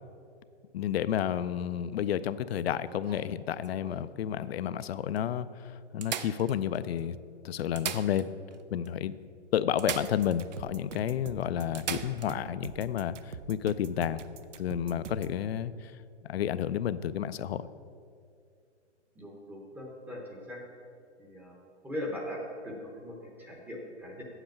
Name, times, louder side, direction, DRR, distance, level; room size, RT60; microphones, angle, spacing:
voice 1, 0.7-7.2 7.4-8.3 8.7-9.2 9.5-14.2 14.6-15.9 16.2-17.7, left 10 dB, 60° left, 15 dB, 0.5 m, -31 dB
sound 1, 2.5-4.1 4.8-4.9 5.2-5.3 6.0-7.0 7.6-8.6 8.9-9.0 9.8-10.6 11.0-11.1 11.7-12.3 14.3-14.5, right 8 dB, 40° right, 0.4 m, -39 dB
sound 2, 9.9-15.4, right 7 dB, 85° right, 0.7 m, -44 dB
voice 2, 19.2-20.6 21.2-21.5 21.8-24.2, left 1 dB, 5° right, -2 dB, 0.7 m, -40 dB
8.2 x 7.9 x 5.8 m, 2.4 s
hypercardioid pair, 150°, 35 cm